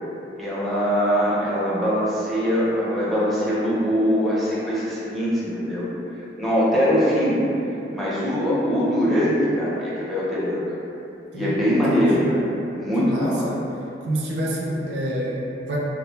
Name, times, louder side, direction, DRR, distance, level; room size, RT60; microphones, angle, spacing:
voice 1, 0.4-5.9 6.4-7.4 7.9-10.7 11.3-13.5, equal, ahead, -9 dB, 0.5 m, -22 dB
voice 2, 11.3-12.3 13.0-13.6 14.0-15.8, equal, 70° right, -4 dB, 0.4 m, -28 dB
2.3 x 2.0 x 3.2 m, 2.8 s
head